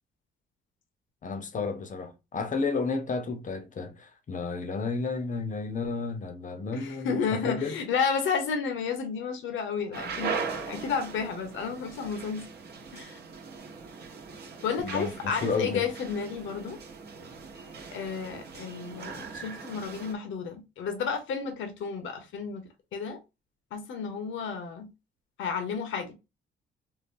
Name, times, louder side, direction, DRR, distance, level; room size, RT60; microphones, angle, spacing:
voice 1, 1.2-7.8 14.8-15.8, left 4 dB, 40° left, 0.7 m, -32 dB
voice 2, 6.7-10.3 10.7-12.4 12.9-13.2 14.6-16.8 17.9-22.6 22.9-23.2 23.7-24.9 25.4-26.2, left 6 dB, 75° left, 0.9 m, -31 dB
sound 1, 9.9-20.1, right 5 dB, 55° right, 0.9 m, -39 dB
3.8 x 2.2 x 2.6 m
cardioid pair, 90°, 20 cm